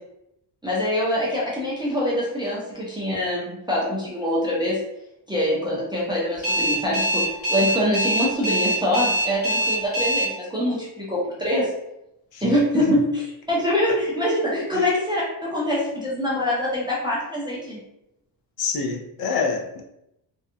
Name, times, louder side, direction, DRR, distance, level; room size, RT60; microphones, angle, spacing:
voice 1, 0.6-4.8 5.3-7.2 7.5-11.7 12.4-17.8, left 1 dB, 10° right, -8 dB, 0.4 m, -24 dB
Alarm, 6.4-10.2, right 1 dB, 30° left, 1.5 m, -23 dB
voice 2, 18.6-19.8, left 5 dB, 55° left, 0 dB, 0.5 m, -27 dB
2.6 x 2.2 x 2.5 m, 0.84 s
cardioid pair, 170°, 44 cm